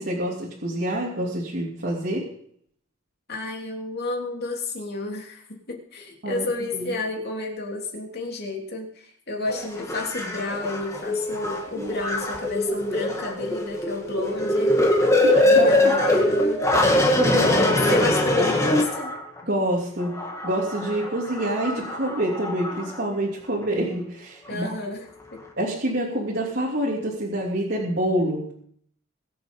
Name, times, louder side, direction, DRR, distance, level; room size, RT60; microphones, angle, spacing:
voice 1, 0.0-2.3 6.2-6.5 6.7-6.9 11.8-11.9 15.2-15.9 17.2-17.8 19.4-24.7 25.6-28.5, right 1 dB, 50° right, -4 dB, 3.0 m, -27 dB
voice 2, 3.3-14.8 15.4-16.6 17.5-19.1 24.5-25.0 25.3-25.4, left 2 dB, 50° left, 0 dB, 3.3 m, -31 dB
sound 1, 9.5-19.4 20.0-23.0 23.6-23.7, left 1 dB, 15° left, 2.1 m, -23 dB
23.0 x 7.8 x 5.4 m, 0.64 s
head